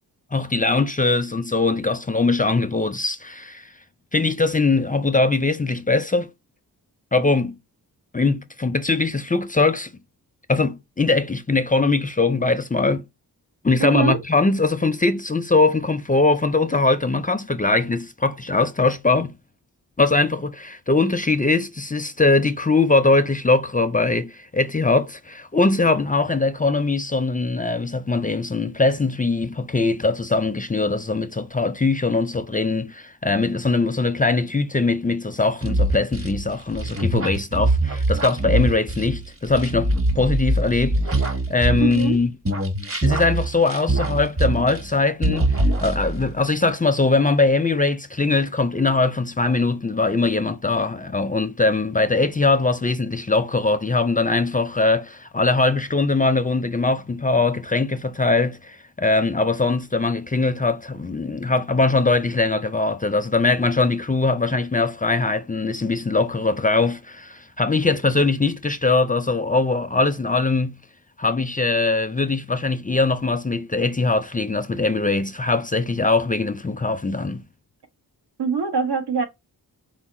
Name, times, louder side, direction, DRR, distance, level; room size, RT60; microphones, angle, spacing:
voice 1, 0.3-3.7 4.1-6.3 7.1-7.6 8.1-9.9 10.5-13.0 13.6-19.3 20.0-42.3 43.0-70.8 71.2-77.4, left 3 dB, 20° left, 0.4 m, -21 dB
voice 2, 13.8-14.2 41.8-42.2 78.4-79.2, right 6 dB, 75° right, 1.1 m, -23 dB
sound 1, 35.6-42.2 42.4-44.9 45.2-46.3, right 2 dB, 35° right, 1.1 m, -23 dB
4.6 x 2.1 x 4.2 m
wide cardioid pair, 85°, 40 cm